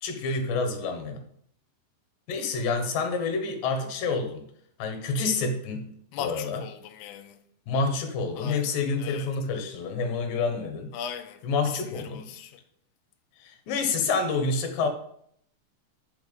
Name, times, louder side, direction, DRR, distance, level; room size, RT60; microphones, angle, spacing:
voice 1, 0.0-1.2 2.3-4.4 4.8-5.9 6.2-6.6 7.7-10.9 11.4-12.3 13.4-14.9, left 4 dB, 70° left, 2.7 m, -28 dB
voice 2, 6.1-7.4 8.4-9.3 10.9-12.6, left 9 dB, 90° left, 1.8 m, -39 dB
7.3 x 5.5 x 5.2 m
omnidirectional pair, 4.3 m